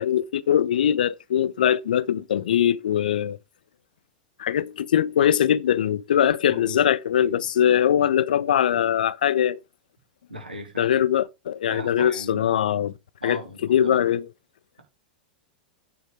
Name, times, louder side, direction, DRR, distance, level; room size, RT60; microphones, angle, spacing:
voice 1, 0.0-3.4 4.4-9.6 10.8-12.9 13.2-13.4 13.7-14.3, left 10 dB, 65° left, 0.6 m, -22 dB
voice 2, 6.5-6.8 7.2-7.5 10.3-10.9 11.7-12.5 13.2-14.0, right 1 dB, 90° right, 3.5 m, -38 dB
9.3 x 5.2 x 4.6 m
figure-of-eight pair, 95°, 5 cm